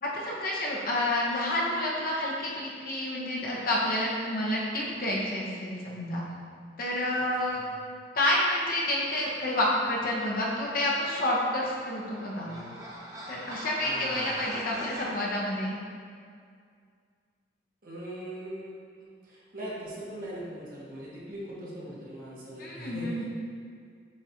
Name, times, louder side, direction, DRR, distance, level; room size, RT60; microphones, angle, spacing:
voice 1, 0.0-6.2 6.8-7.6 8.1-12.5 13.3-15.8 22.6-23.2, left 1 dB, 55° left, -4 dB, 0.7 m, -29 dB
sound 1, 11.6-15.1, right 1 dB, 20° right, 0.6 m, -41 dB
voice 2, 12.4-12.8 13.8-14.4 17.8-23.2, right 1 dB, 55° right, -7 dB, 1.1 m, -41 dB
7.3 x 2.4 x 2.9 m, 2.1 s
head